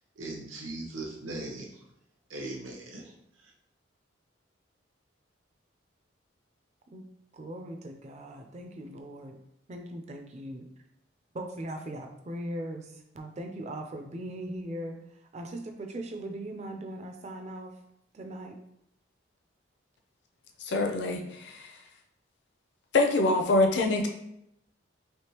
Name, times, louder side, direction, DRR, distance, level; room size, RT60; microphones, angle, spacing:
voice 1, 0.2-1.8 2.3-3.1 3.4-3.5, right 2 dB, 85° right, -1 dB, 0.9 m, -39 dB
voice 2, 7.3-9.4 9.7-10.7 11.3-17.8 18.1-18.6, right 1 dB, 35° right, 5 dB, 0.4 m, -39 dB
voice 3, 20.6-21.7 22.9-24.1, left 2 dB, 60° left, 3 dB, 0.5 m, -25 dB
3.5 x 3.2 x 2.9 m, 0.79 s
head